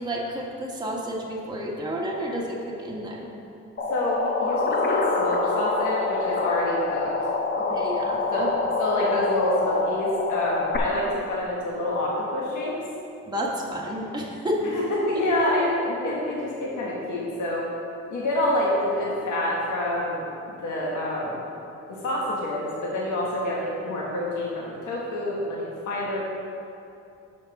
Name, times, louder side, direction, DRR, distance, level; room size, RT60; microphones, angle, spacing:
voice 1, 0.0-3.3 7.4-8.5 13.3-14.6, equal, 15° right, -2 dB, 1.2 m, -31 dB
sound 1, 3.8-10.8, left 4 dB, 35° left, 1.0 m, -26 dB
voice 2, 3.9-7.1 8.3-8.5 8.8-12.7 14.7-17.6 18.1-20.2 20.6-21.4 21.9-26.2, left 1 dB, 75° left, -4 dB, 1.5 m, -27 dB
6.6 x 5.7 x 5.9 m, 2.7 s
cardioid pair, 90°, 30 cm